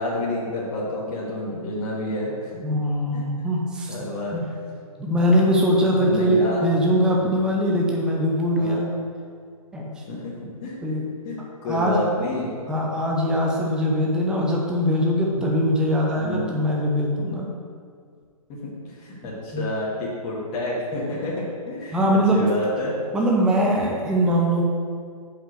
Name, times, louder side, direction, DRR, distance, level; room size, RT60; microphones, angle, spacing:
voice 1, 0.0-2.5 3.1-3.2 3.9-4.4 6.0-6.6 6.9-7.2 8.5-8.8 10.1-10.8 11.2-12.7 16.1-16.5 18.5-22.9, left 1 dB, 25° left, -6 dB, 1.7 m, -29 dB
voice 2, 2.6-3.9 4.3-4.4 5.0-8.9 9.7-9.9 10.8-11.1 11.6-12.0 12.7-17.5 19.5-19.6 21.9-22.4 23.1-24.6, equal, 5° right, -2 dB, 0.6 m, -21 dB
5.4 x 5.0 x 6.5 m, 2.1 s
hypercardioid pair, 140°, 19 cm